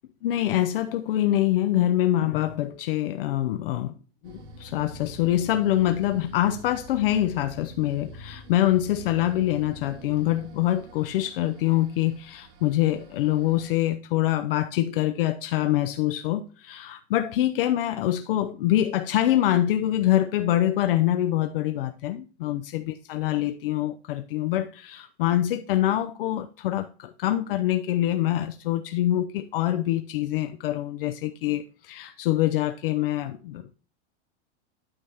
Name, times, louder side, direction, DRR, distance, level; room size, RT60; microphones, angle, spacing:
voice 1, 0.2-3.9 4.2-33.7, left 13 dB, 55° left, 0.8 m, -25 dB
sound 1, 4.2-13.7, right 1 dB, 80° right, 3.7 m, -46 dB
12.0 x 5.9 x 3.5 m
supercardioid pair, 170°, 34 cm